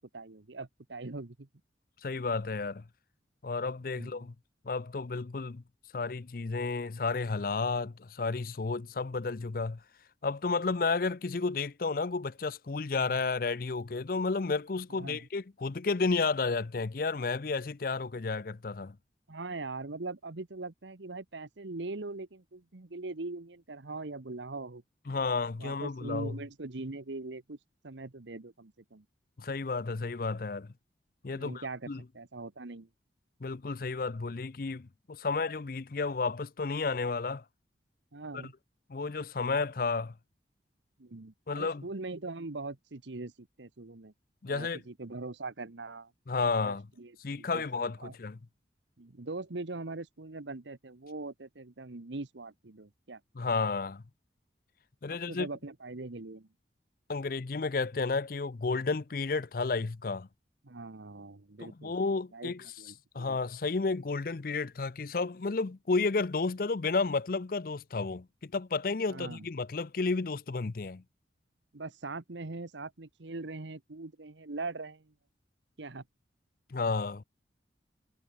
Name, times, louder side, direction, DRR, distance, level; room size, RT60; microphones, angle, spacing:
voice 1, 0.1-1.5 3.9-4.3 14.9-15.3 19.3-24.8 25.6-27.6 27.8-29.0 31.3-32.9 38.1-38.5 41.0-44.1 44.5-46.1 46.6-48.1 49.0-53.2 55.1-56.5 60.6-61.9 62.3-63.4 69.1-69.5 71.7-75.1 75.8-76.0, right 3 dB, 80° right, 1.1 m, -41 dB
voice 2, 2.0-2.8 3.4-4.3 4.7-5.6 5.9-9.8 10.2-19.0 25.1-26.4 29.4-30.7 31.2-32.0 33.4-37.4 38.3-38.5 38.9-40.1 41.5-41.8 44.4-44.8 46.3-46.9 47.2-48.4 53.4-54.0 55.0-55.5 57.1-60.3 61.6-62.7 63.1-71.0 76.7-77.2, left 4 dB, 50° left, 0.5 m, -32 dB
head